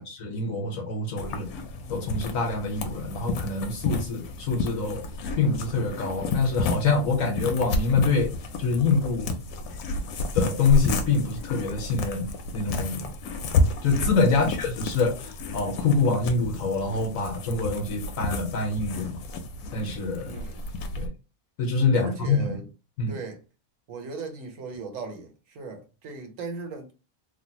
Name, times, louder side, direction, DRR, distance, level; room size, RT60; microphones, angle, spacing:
voice 1, 0.0-1.5 1.9-5.0 5.4-8.3 8.6-9.3 10.3-12.2 12.5-13.0 13.8-19.2 19.7-20.3 21.0-21.1 21.6-22.5 23.0-23.1, left 4 dB, 70° left, 1.2 m, -25 dB
sound 1, 1.2-21.1, left 2 dB, 90° left, 1.1 m, -31 dB
voice 2, 14.2-14.6 20.3-20.6 22.0-22.7 23.1-23.4 23.9-26.9, right 4 dB, 70° right, 1.1 m, -38 dB
3.3 x 2.2 x 2.8 m
omnidirectional pair, 1.5 m